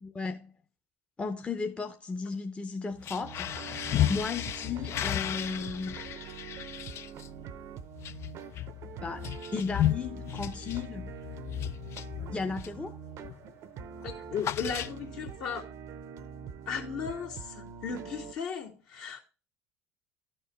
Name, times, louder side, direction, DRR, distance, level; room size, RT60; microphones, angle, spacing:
voice 1, 0.0-0.5 1.2-6.0 9.0-11.1 12.3-12.9, left 4 dB, 15° left, 0.8 m, -35 dB
sound 1, 2.9-12.9 13.2-13.5 13.8-15.3, left 12 dB, 45° left, 0.4 m, -34 dB
sound 2, 3.2-18.3, right 7 dB, 50° right, 0.6 m, -44 dB
voice 2, 14.0-15.6 16.7-19.2, left 6 dB, 65° left, 2.3 m, -36 dB
13.0 x 4.4 x 3.2 m
hypercardioid pair, 70°, 6 cm